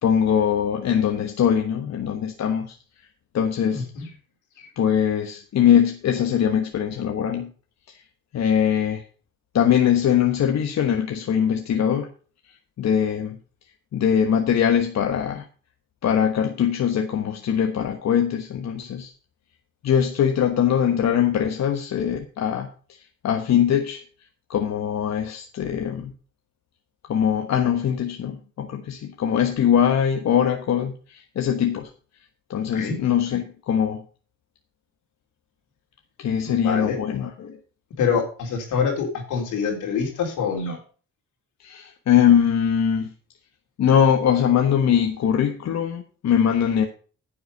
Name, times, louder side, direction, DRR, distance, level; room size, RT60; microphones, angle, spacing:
voice 1, 0.0-2.8 3.3-3.8 4.8-7.5 7.9-8.0 8.3-9.0 9.5-12.1 12.8-13.4 13.9-15.5 16.0-19.1 19.8-23.0 23.2-24.0 24.5-26.1 27.0-31.9 32.5-34.0 36.2-37.6 41.6-43.1 43.8-46.9, left 8 dB, 60° left, 5 dB, 1.3 m, -22 dB
voice 2, 3.7-4.1 32.7-33.0 36.5-37.0 38.0-40.8, left 6 dB, 85° left, 2 dB, 3.8 m, -25 dB
10.0 x 7.9 x 5.3 m, 0.39 s
cardioid pair, 90°, 30 cm